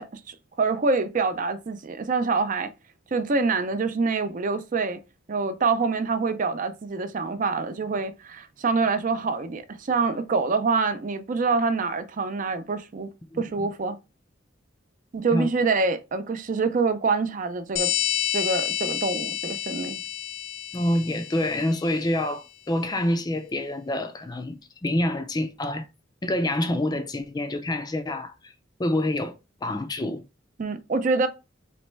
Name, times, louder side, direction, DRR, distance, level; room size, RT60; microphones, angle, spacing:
voice 1, 0.0-2.7 3.1-5.0 5.3-13.1 13.4-14.0 15.1-17.9 18.3-20.0 30.6-31.3, right 4 dB, 40° right, 0.4 m, -26 dB
voice 2, 13.3-13.7 15.3-15.5 20.7-25.9 26.2-28.5 28.8-29.3 29.6-30.2, left 1 dB, 20° left, 0.4 m, -27 dB
sound 1, 17.8-22.0, left 12 dB, 75° left, 0.5 m, -29 dB
4.2 x 3.0 x 3.2 m
head